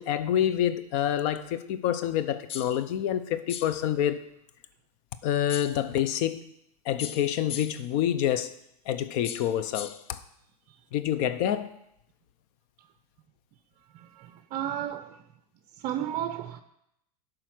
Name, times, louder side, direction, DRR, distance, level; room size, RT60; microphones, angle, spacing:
voice 1, 0.0-4.2 5.2-6.4 6.8-8.6 8.9-10.2 10.9-11.8, left 10 dB, 55° left, 0.7 m, -27 dB
sound 1, 2.5-2.8 3.5-3.8 5.5-5.8 7.0-7.9 9.2-10.1, left 8 dB, 30° left, 0.4 m, -39 dB
voice 2, 14.2-15.1 15.8-16.6, right 11 dB, 45° right, 0.5 m, -32 dB
11.0 x 3.9 x 6.1 m
hypercardioid pair, 115°, 20 cm